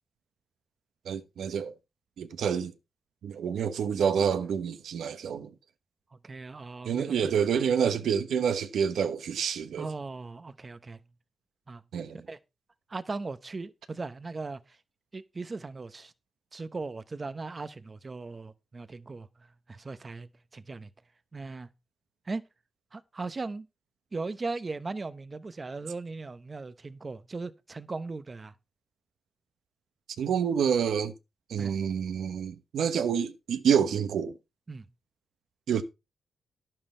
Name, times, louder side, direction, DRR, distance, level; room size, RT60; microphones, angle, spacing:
voice 1, 1.0-1.7 2.2-2.7 3.2-5.5 6.8-9.9 11.9-12.2 30.2-31.1 31.5-34.4 35.7-35.8, right 7 dB, 80° right, 1.0 m, -28 dB
voice 2, 6.2-7.3 9.8-11.0 11.7-11.8 12.3-12.4 12.9-14.8 15.1-16.1 16.5-20.9 21.3-21.7 22.3-22.4 22.9-23.7 24.1-28.5 31.6-31.8 34.7-34.9, right 3 dB, 25° right, 0.8 m, -38 dB
12.0 x 7.6 x 4.4 m
wide cardioid pair, 175°, 0 cm